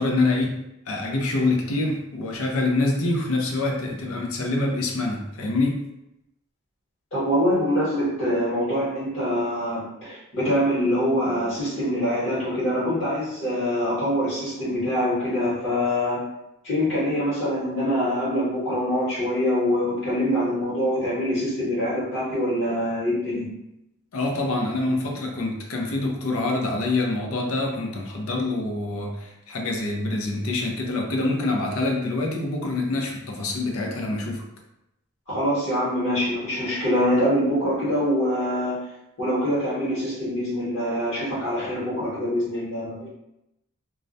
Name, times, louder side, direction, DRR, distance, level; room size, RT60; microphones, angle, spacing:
voice 1, 0.0-5.8 24.1-34.4, left 2 dB, 75° left, 1 dB, 0.5 m, -26 dB
voice 2, 7.1-16.2 16.6-23.5 35.3-38.8 39.2-43.1, equal, 55° left, -12 dB, 1.1 m, -24 dB
2.3 x 2.1 x 2.6 m, 0.86 s
head